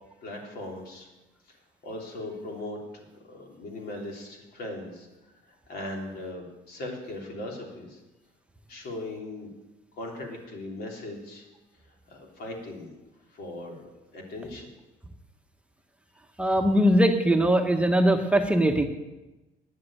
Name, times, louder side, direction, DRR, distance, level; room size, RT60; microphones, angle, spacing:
voice 1, 0.2-1.1 1.8-5.1 5.5-8.0 8.7-9.5 9.9-11.4 12.1-13.0 13.3-13.9 14.1-14.7, left 1 dB, 65° left, 0 dB, 3.2 m, -38 dB
voice 2, 16.4-18.8, equal, 5° right, 4 dB, 1.0 m, -21 dB
9.9 x 7.6 x 8.6 m, 1.1 s
cardioid pair, 110°, 17 cm